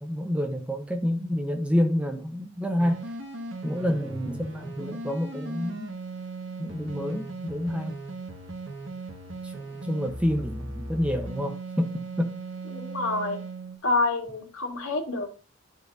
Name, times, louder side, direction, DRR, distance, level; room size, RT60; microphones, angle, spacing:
voice 1, 0.0-3.0 3.6-5.9 6.6-8.0 9.4-12.3, equal, 5° right, 0.7 m, -28 dB
sound 1, 2.8-13.8, right 3 dB, 65° right, 1.5 m, -38 dB
voice 2, 12.7-13.4 13.8-15.3, left 3 dB, 85° left, 2.0 m, -28 dB
12.0 x 4.3 x 2.6 m
head